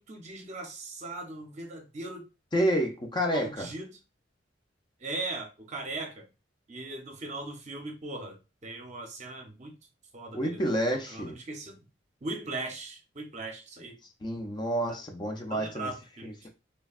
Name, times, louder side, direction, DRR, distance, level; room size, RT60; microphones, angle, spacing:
voice 1, 0.0-2.2 3.3-4.0 5.0-6.3 6.7-9.7 10.1-11.9 12.2-14.0 14.8-15.0 15.5-16.3, right 2 dB, 40° right, 0.7 m, -39 dB
voice 2, 2.5-3.7 10.3-11.4 14.2-15.9 16.2-16.5, equal, 25° left, 0.4 m, -29 dB
3.2 x 2.2 x 2.3 m
head